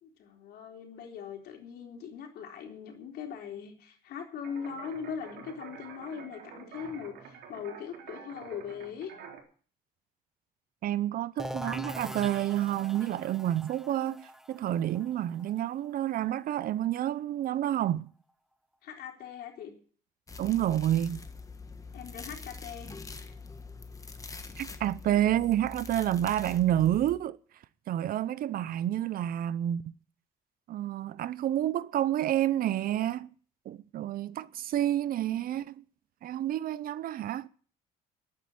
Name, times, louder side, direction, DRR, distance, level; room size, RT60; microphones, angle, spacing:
voice 1, 0.0-9.1 18.8-19.7 21.9-23.3, left 7 dB, 70° left, 3.9 m, -41 dB
sound 1, 4.4-9.4, right 7 dB, 75° right, 4.0 m, -48 dB
voice 2, 10.8-18.1 20.4-21.2 24.6-27.4 27.9-29.9 30.7-33.3 33.7-35.8 36.2-37.5, right 12 dB, 60° right, 0.7 m, -29 dB
sound 2, 11.4-17.0, equal, ahead, 0.8 m, -42 dB
sound 3, 20.3-27.2, left 4 dB, 20° left, 1.6 m, -44 dB
11.5 x 9.1 x 9.4 m
cardioid pair, 110°, 17 cm